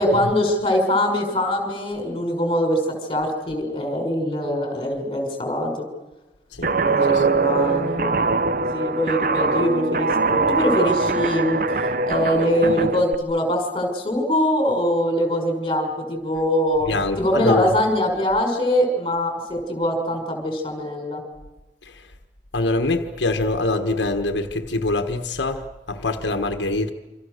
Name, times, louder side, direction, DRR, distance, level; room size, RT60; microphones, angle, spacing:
voice 1, 0.0-5.9 6.8-11.6 12.0-16.9 17.2-21.2, left 1 dB, 25° left, 5.5 m, -23 dB
Guitar, 6.6-13.2, right 3 dB, 50° right, 0.8 m, -22 dB
voice 2, 16.9-17.7 21.8-22.0 22.5-26.9, left 2 dB, 85° left, 1.5 m, -24 dB
28.0 x 26.0 x 6.7 m
head